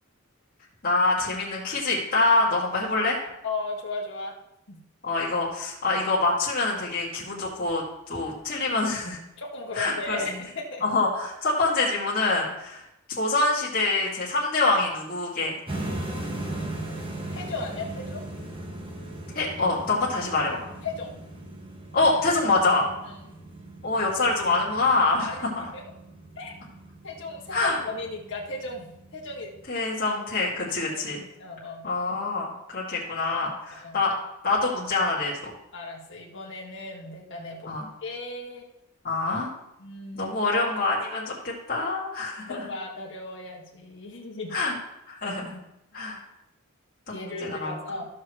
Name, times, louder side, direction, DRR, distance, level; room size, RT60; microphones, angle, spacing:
voice 1, 0.8-3.2 5.0-9.2 9.7-10.2 10.8-12.8 13.2-15.6 19.3-20.6 21.9-22.9 23.8-25.7 27.5-27.8 29.7-31.2 31.8-34.1 34.4-35.3 37.7-37.8 39.0-39.5 40.1-41.3 41.7-42.6 44.5-44.7 45.1-45.6 45.9-46.2 47.1-47.7, left 3 dB, 40° left, -6 dB, 2.2 m, -25 dB
voice 2, 3.4-4.4 4.7-4.8 9.4-10.8 17.3-18.2 20.1-20.3 20.8-21.2 23.0-23.4 25.2-25.4 25.7-25.8 26.4-26.6 27.0-29.5 30.9-31.0 31.4-31.8 33.8-34.0 35.7-37.7 38.0-38.7 39.8-40.4 42.5-44.6 47.1-48.1, left 3 dB, 55° left, -1 dB, 1.8 m, -36 dB
sound 1, 15.7-29.6, right 1 dB, 25° right, 1.2 m, -39 dB
15.0 x 6.5 x 3.1 m, 0.86 s
head